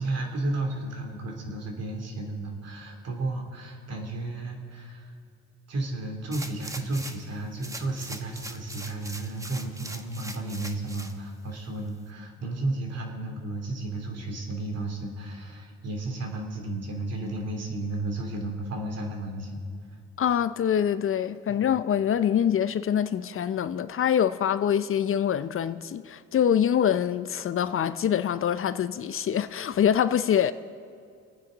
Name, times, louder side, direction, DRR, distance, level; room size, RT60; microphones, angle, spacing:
voice 1, 0.0-5.1 5.7-19.6 21.5-21.7, right 2 dB, 55° right, 2.8 m, -33 dB
sound 1, 6.3-7.3 7.6-11.1 11.6-11.7, right 1 dB, 10° right, 1.0 m, -41 dB
voice 2, 20.2-30.5, left 9 dB, 45° left, 0.5 m, -25 dB
26.5 x 9.4 x 3.9 m
cardioid pair, 90°, 30 cm